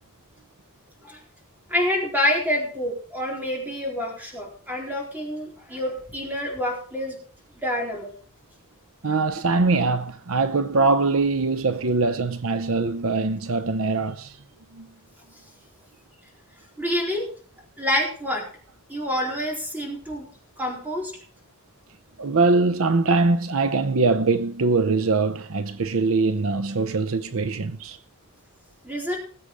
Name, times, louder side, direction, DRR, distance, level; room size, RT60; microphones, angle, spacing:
voice 1, 1.7-7.2 7.5-8.2 16.8-17.3 17.8-18.4 18.9-20.3 20.6-21.1 28.8-29.2, left 1 dB, 10° right, 4.1 m, -27 dB
voice 2, 9.0-14.4 14.7-14.9 22.2-28.0, right 3 dB, 65° right, 0.7 m, -22 dB
19.5 x 7.9 x 4.8 m
head